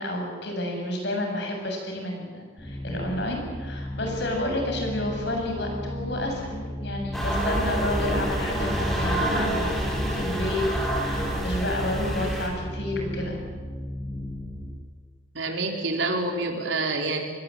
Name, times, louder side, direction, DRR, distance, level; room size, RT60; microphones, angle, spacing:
voice 1, 0.0-10.7 11.0-13.4, left 1 dB, 60° left, 2 dB, 7.4 m, -30 dB
sound 1, 2.6-14.7, left 1 dB, 20° left, 5.7 m, -35 dB
sound 2, 7.1-12.5, right 1 dB, ahead, 4.8 m, -27 dB
voice 2, 15.3-17.2, right 3 dB, 70° right, 3 dB, 3.8 m, -27 dB
26.5 x 21.0 x 8.7 m, 1.5 s
head